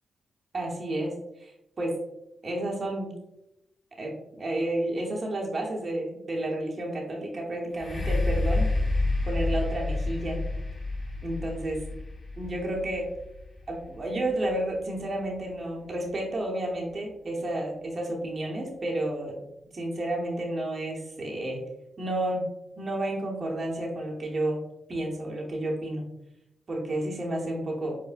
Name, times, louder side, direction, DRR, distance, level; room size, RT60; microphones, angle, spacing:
voice 1, 0.5-1.1 1.4-1.5 1.8-1.9 2.4-3.1 4.0-8.7 9.3-10.4 11.2-11.8 12.4-13.1 13.7-19.4 19.7-21.6 22.0-22.5 22.8-24.6 24.9-26.0 26.7-27.9, right 1 dB, 50° right, -1 dB, 0.8 m, -31 dB
sound 1, 7.7-15.5 16.1-16.2, left 2 dB, 45° left, 1.0 m, -30 dB
4.9 x 2.1 x 2.5 m, 0.86 s
supercardioid pair, 40°, 0 cm